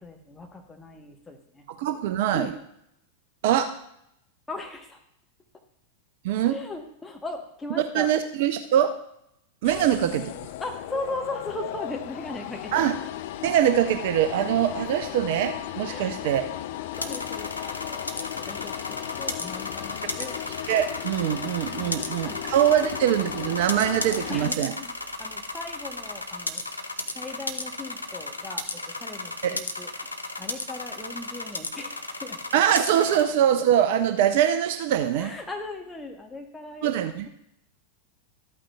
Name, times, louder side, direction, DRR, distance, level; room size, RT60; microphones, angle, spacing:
voice 1, 0.0-1.7 2.3-2.5 4.5-5.0 6.5-8.1 9.7-9.9 10.6-12.7 15.8-16.2 17.0-18.1 18.5-18.7 19.2-20.4 21.7-22.0 22.2-22.9 24.3-26.6 27.1-30.1 30.4-32.4 35.1-37.0, left 2 dB, 10° left, 3 dB, 1.0 m, -38 dB
voice 2, 1.8-2.5 3.4-3.7 6.2-6.6 7.9-8.9 9.6-10.2 12.7-12.9 13.4-16.4 20.7-24.7 29.4-29.6 32.5-35.3 36.8-37.3, right 10 dB, 50° right, 9 dB, 0.5 m, -23 dB
sound 1, 9.6-24.5, left 13 dB, 50° left, 0.4 m, -36 dB
sound 2, 16.9-33.2, left 2 dB, 80° left, 0.7 m, -35 dB
13.0 x 8.7 x 2.3 m, 0.76 s
figure-of-eight pair, 90°, 0 cm